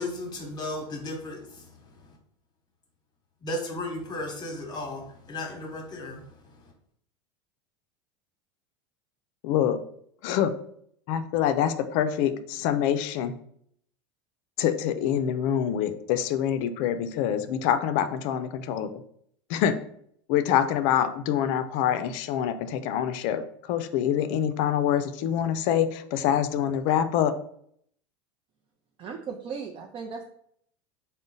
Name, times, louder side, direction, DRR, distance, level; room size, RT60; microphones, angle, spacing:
voice 1, 0.0-2.1 3.4-6.7, left 1 dB, 30° left, 2 dB, 1.0 m, -35 dB
voice 2, 9.4-9.8 10.2-10.5 11.1-13.3 14.6-18.9 19.5-19.8 20.3-27.3, left 9 dB, 60° left, 10 dB, 0.4 m, -25 dB
voice 3, 29.0-30.2, right 5 dB, 35° right, 3 dB, 0.5 m, -36 dB
3.8 x 2.1 x 3.7 m, 0.67 s
hypercardioid pair, 100°, 15 cm